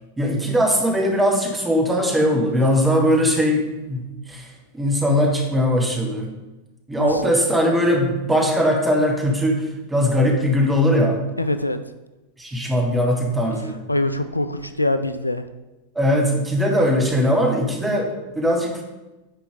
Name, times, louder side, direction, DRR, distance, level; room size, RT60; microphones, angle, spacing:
voice 1, 0.2-4.5 4.7-6.3 6.9-11.2 12.4-13.8 15.9-18.8, equal, 10° right, 1 dB, 1.4 m, -20 dB
voice 2, 11.4-11.8 13.9-15.4, left 1 dB, 85° left, 10 dB, 0.4 m, -23 dB
9.6 x 4.5 x 3.7 m, 1.0 s
figure-of-eight pair, 90°, 0 cm